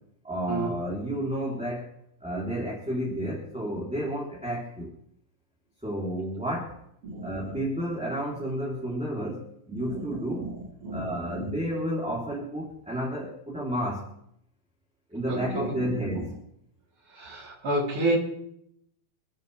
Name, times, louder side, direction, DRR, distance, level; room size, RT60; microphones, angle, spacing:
voice 1, 0.2-1.9 2.2-4.9 5.8-6.8 7.2-10.5 10.9-14.1 15.1-16.3, equal, ahead, -5 dB, 3.1 m, -31 dB
voice 2, 7.0-7.6 9.7-10.5 10.8-11.5 15.3-16.2 17.1-18.1, right 1 dB, 35° right, -8 dB, 4.7 m, -31 dB
29.5 x 10.5 x 3.5 m, 0.74 s
omnidirectional pair, 4.5 m